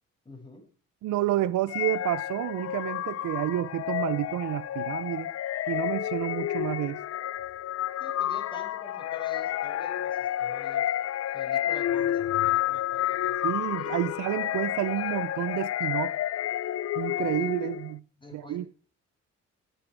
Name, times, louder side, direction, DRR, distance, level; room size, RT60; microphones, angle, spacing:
voice 1, 0.2-0.7 8.0-10.8 11.3-14.1 17.4-17.7 18.2-18.7, left 1 dB, 15° left, 5.6 m, -48 dB
voice 2, 1.0-5.3 5.7-7.0 13.4-16.1 17.0-18.0 18.3-18.7, right 14 dB, 80° right, 0.7 m, -30 dB
sound 1, 1.7-17.9, left 12 dB, 55° left, 0.6 m, -30 dB
18.0 x 8.1 x 4.7 m
cardioid pair, 90°, 30 cm